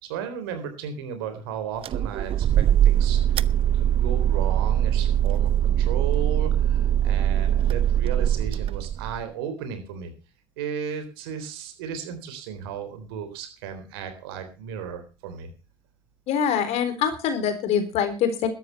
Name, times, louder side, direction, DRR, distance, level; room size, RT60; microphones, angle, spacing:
voice 1, 0.0-3.4 3.7-10.1 10.6-15.5, right 7 dB, 80° right, 8 dB, 3.8 m, -35 dB
sound 1, 1.8-9.2, right 10 dB, 50° right, 0.7 m, -22 dB
voice 2, 16.3-18.5, left 8 dB, 65° left, 9 dB, 4.0 m, -24 dB
13.0 x 10.5 x 5.7 m, 0.33 s
hypercardioid pair, 70°, 12 cm